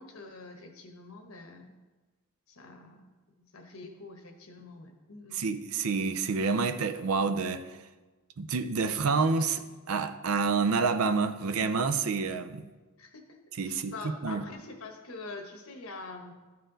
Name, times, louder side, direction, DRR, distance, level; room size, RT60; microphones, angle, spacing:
voice 1, 0.0-1.7 2.5-3.1 3.5-5.4 13.0-13.4 13.6-16.3, left 3 dB, 80° left, 1.1 m, -45 dB
voice 2, 5.3-7.6 8.4-12.7 13.6-13.9 14.2-14.4, right 4 dB, 85° right, 0.5 m, -28 dB
12.5 x 4.3 x 3.9 m
head